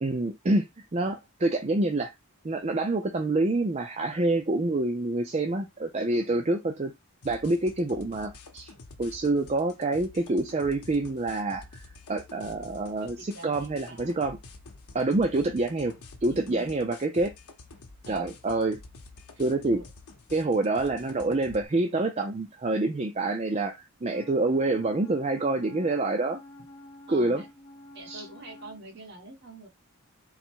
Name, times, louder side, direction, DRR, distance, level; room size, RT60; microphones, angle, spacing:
voice 1, 0.0-0.7 0.9-2.1 2.4-6.9 7.2-8.7 9.0-14.4 14.9-15.9 16.2-17.3 18.1-18.8 19.4-19.8 20.3-26.4 27.1-27.4 28.1-28.2, right 2 dB, 30° right, 0.5 m, -27 dB
voice 2, 6.1-6.5 13.0-14.1 16.3-16.7 18.0-18.3 19.6-19.9 27.1-27.5 27.9-29.7, right 2 dB, 50° right, 1.3 m, -45 dB
sound 1, 7.2-21.6, left 3 dB, 80° left, 0.8 m, -49 dB
Wind instrument woodwind instrument, 24.0-28.8, left 1 dB, 65° left, 1.1 m, -48 dB
4.0 x 2.1 x 4.5 m
head